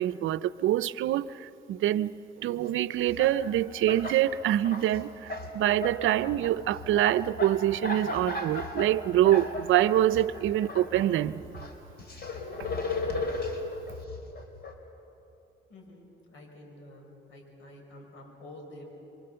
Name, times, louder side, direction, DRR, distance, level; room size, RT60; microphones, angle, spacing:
voice 1, 0.0-2.1 2.4-11.4, right 12 dB, 80° right, 16 dB, 0.6 m, -25 dB
sound 1, 2.6-2.7 3.0-4.2 4.5-5.5 5.8-11.1 11.4-14.7, left 2 dB, 50° left, 3.6 m, -36 dB
voice 2, 15.7-18.9, left 1 dB, 75° left, 1 dB, 5.8 m, -49 dB
26.5 x 23.5 x 7.0 m, 3.0 s
cardioid pair, 90°, 20 cm